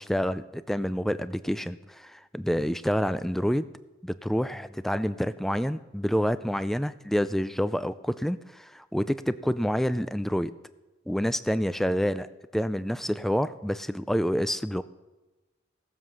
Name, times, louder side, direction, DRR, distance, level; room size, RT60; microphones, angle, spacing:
voice 1, 0.0-3.7 4.0-10.5 11.1-14.8, equal, ahead, 14 dB, 0.3 m, -28 dB
18.0 x 7.4 x 6.3 m, 1.1 s
head